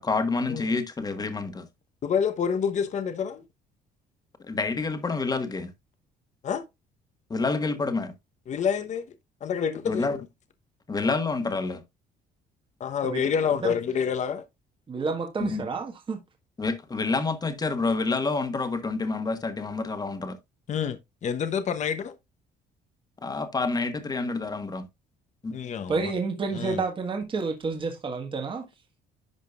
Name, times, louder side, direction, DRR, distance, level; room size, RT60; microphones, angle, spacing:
voice 1, 0.0-1.7 4.5-5.7 7.3-8.1 9.8-10.2 10.9-11.8 15.4-15.6 16.6-20.4 23.2-24.9 25.4-25.5, left 3 dB, 20° left, 1.5 m, -28 dB
voice 2, 2.0-3.4 6.4-6.6 8.5-9.0 9.4-10.0 12.8-14.4 20.7-22.1 25.5-26.1 26.5-26.8, left 7 dB, 45° left, 1.0 m, -27 dB
voice 3, 14.9-16.2 25.9-28.6, right 4 dB, 30° right, 1.5 m, -30 dB
11.0 x 5.1 x 2.4 m
cardioid pair, 110°, 17 cm